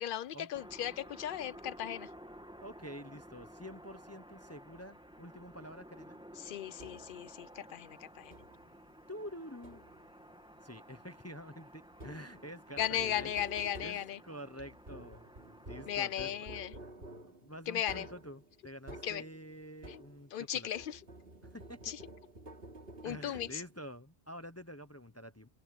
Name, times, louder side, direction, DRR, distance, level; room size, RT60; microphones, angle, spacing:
voice 1, 0.0-2.1 6.4-8.3 12.8-14.2 15.9-16.7 17.7-18.1 19.0-19.2 19.9-20.0 20.3-21.0 21.9-22.0 23.0-23.6, left 10 dB, 60° left, 0.7 m, -36 dB
sound 1, 0.5-16.4, equal, 5° right, 2.0 m, -54 dB
voice 2, 2.6-6.2 9.1-9.8 10.6-13.3 13.8-16.3 17.0-20.7 21.5-21.9 23.0-25.5, equal, 15° left, 1.0 m, -48 dB
sound 2, 6.8-7.3 8.3-8.8 9.6-10.2 11.9-20.4 20.7-23.9, right 1 dB, 60° right, 3.2 m, -51 dB
omnidirectional pair, 1.1 m